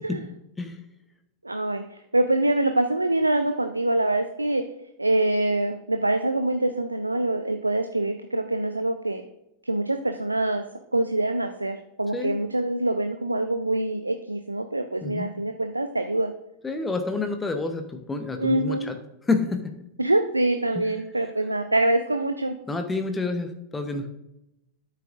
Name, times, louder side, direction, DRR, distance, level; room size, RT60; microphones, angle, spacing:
voice 1, 1.4-1.8 2.1-4.6 5.0-9.2 9.6-10.6 10.9-16.3 18.4-18.9 20.0-22.5, right 2 dB, 85° right, 7 dB, 0.5 m, -25 dB
voice 2, 16.6-19.0 19.2-19.7 20.7-20.9 21.2-21.3 22.7-24.1, left 3 dB, 15° left, 7 dB, 0.9 m, -28 dB
12.5 x 7.5 x 2.5 m, 0.84 s
figure-of-eight pair, 90°, 0 cm